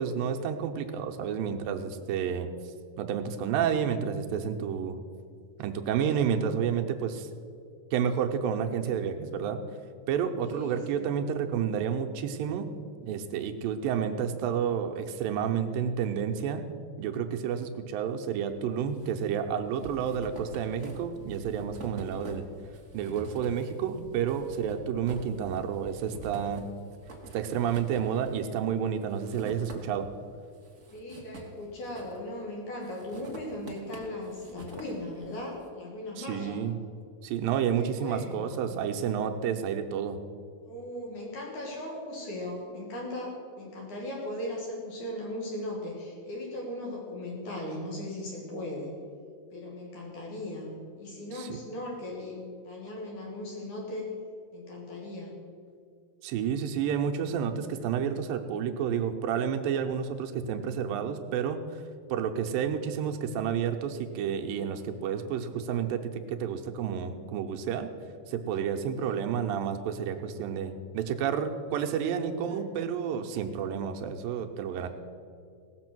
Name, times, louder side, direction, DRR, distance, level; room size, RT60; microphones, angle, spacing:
voice 1, 0.0-2.5 3.0-5.0 5.6-7.3 7.9-9.6 10.1-12.7 13.0-16.6 17.0-22.4 22.9-26.7 27.3-30.1 36.2-36.7 37.2-40.2 51.3-51.6 56.2-61.6 62.1-67.9 68.3-74.9, right 8 dB, 85° right, 5 dB, 2.5 m, -30 dB
voice 2, 10.4-11.2 30.9-36.6 37.7-38.7 40.6-48.9 49.5-54.1 54.5-55.3 69.0-69.2 72.4-72.7 74.8-74.9, left 1 dB, 65° left, -2 dB, 3.2 m, -38 dB
sound 1, 18.5-19.1 19.4-30.2 30.5-32.4 32.8-35.5, right 3 dB, 60° right, 0.7 m, -46 dB
17.5 x 7.0 x 6.1 m, 2.3 s
omnidirectional pair, 4.0 m